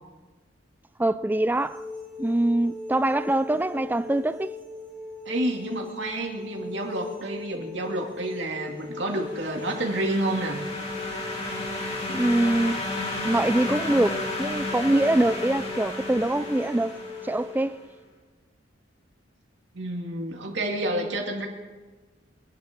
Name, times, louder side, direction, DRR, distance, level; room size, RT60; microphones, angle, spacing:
voice 1, 1.0-1.8 2.2-4.5 12.1-12.8 13.2-17.0 17.2-17.8, right 1 dB, 10° right, 0.3 m, -24 dB
sound 1, 1.5-17.4, left 3 dB, 10° left, 5.7 m, -40 dB
voice 2, 5.2-10.6 19.7-21.5, right 1 dB, 75° right, 2.5 m, -29 dB
sound 2, 9.0-17.6, left 2 dB, 35° left, 3.0 m, -33 dB
25.5 x 11.0 x 3.7 m
head